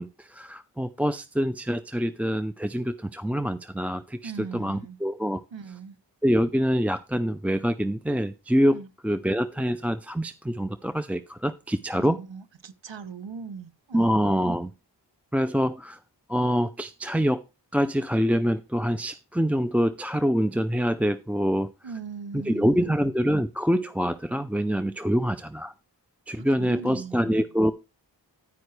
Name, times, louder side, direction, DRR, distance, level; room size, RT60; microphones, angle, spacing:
voice 1, 0.0-5.4 6.2-12.2 13.9-14.7 15.3-16.0 16.3-17.4 17.7-21.7 22.3-25.7 26.3-27.7, equal, 5° right, 0.4 m, -25 dB
voice 2, 4.2-5.0 5.5-6.0 8.7-8.9 11.9-14.1 21.8-23.0 26.4-27.5, right 5 dB, 85° right, 0.8 m, -40 dB
9.6 x 9.4 x 3.2 m
wide cardioid pair, 45°, 43 cm